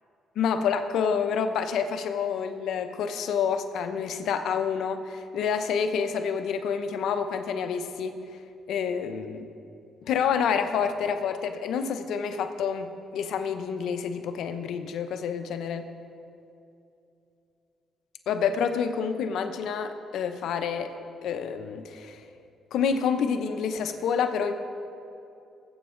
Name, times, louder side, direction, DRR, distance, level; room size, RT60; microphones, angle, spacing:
voice 1, 0.4-8.2 8.7-9.5 10.1-15.9 18.3-20.9 21.2-22.2 22.7-24.5, left 6 dB, 80° left, 8 dB, 0.8 m, -28 dB
19.0 x 8.1 x 3.8 m, 2.7 s
cardioid pair, 90°, 0 cm